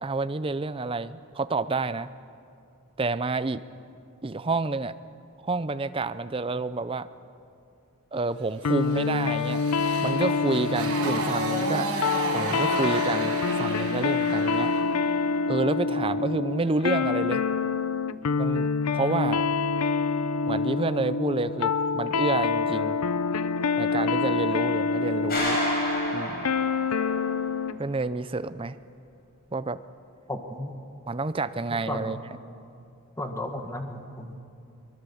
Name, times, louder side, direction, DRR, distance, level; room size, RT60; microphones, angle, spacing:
voice 1, 0.0-2.1 3.0-3.6 4.2-5.0 5.4-7.1 8.1-9.6 10.0-11.9 12.3-14.7 15.5-17.4 18.4-19.5 20.5-23.0 23.8-25.6 26.1-26.5 27.8-28.8 29.5-29.8 31.1-32.2, right 3 dB, 25° right, 13 dB, 0.5 m, -29 dB
sound 1, 8.6-27.8, left 4 dB, 80° left, 0.6 m, -26 dB
Motorcycle, 8.9-14.9, right 2 dB, 85° right, 5.0 m, -32 dB
sound 2, 25.3-27.2, equal, 45° left, 5.3 m, -29 dB
voice 2, 30.3-30.7 31.9-32.2 33.2-34.3, left 1 dB, 15° left, 5 dB, 1.6 m, -34 dB
23.0 x 22.0 x 7.1 m, 2.5 s
head